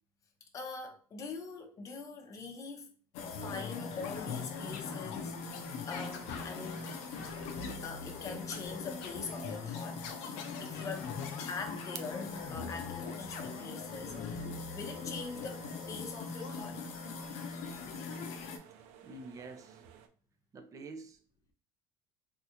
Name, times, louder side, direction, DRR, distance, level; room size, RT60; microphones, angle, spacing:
voice 1, 0.5-2.9 3.4-6.9 7.8-10.1 10.6-11.1 11.5-14.5 14.7-16.8 17.5-17.8, left 4 dB, 30° left, 0.7 m, -43 dB
sound 1, 3.1-18.6, left 5 dB, 85° left, 0.6 m, -40 dB
sound 2, 5.4-20.1, right 8 dB, 80° right, 0.4 m, -55 dB
voice 2, 19.0-19.8 20.5-21.2, right 3 dB, 30° right, 0.5 m, -47 dB
3.5 x 2.4 x 2.8 m
cardioid pair, 135°, 11 cm